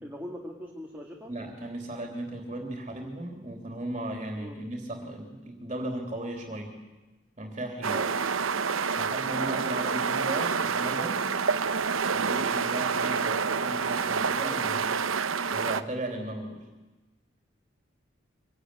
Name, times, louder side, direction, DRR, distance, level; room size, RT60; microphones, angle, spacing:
voice 1, 0.0-1.3 4.3-4.6 7.8-8.1 13.5-13.7, equal, 10° right, -1 dB, 2.2 m, -41 dB
voice 2, 1.3-6.7 7.4-8.0 8.4-8.5 8.9-11.3 12.1-14.9 15.5-16.7, right 1 dB, 30° right, 3 dB, 3.4 m, -36 dB
sound 1, 7.8-15.8, right 5 dB, 90° right, 0.9 m, -28 dB
24.5 x 18.0 x 9.9 m, 1.2 s
head